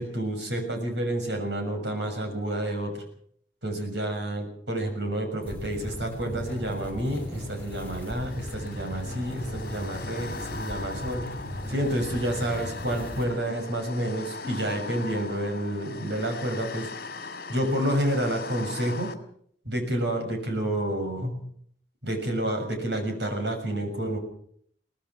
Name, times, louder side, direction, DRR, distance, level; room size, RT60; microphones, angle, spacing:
voice 1, 0.0-3.0 3.6-11.3 11.7-16.9 17.5-19.1 19.6-21.4 22.0-24.2, right 1 dB, 70° right, 5 dB, 6.6 m, -29 dB
sound 1, 5.5-13.2, equal, 10° left, 6.4 m, -37 dB
sound 2, 7.9-19.2, left 3 dB, 55° left, 2.4 m, -40 dB
23.5 x 18.0 x 6.1 m, 0.65 s
head